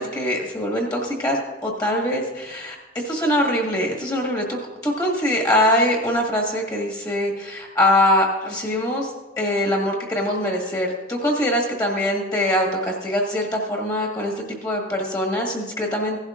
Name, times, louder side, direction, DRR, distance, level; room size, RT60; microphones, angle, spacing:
voice 1, 0.0-2.8 3.0-16.2, left 1 dB, 20° left, 0 dB, 1.7 m, -23 dB
16.0 x 11.5 x 2.5 m, 1.2 s
head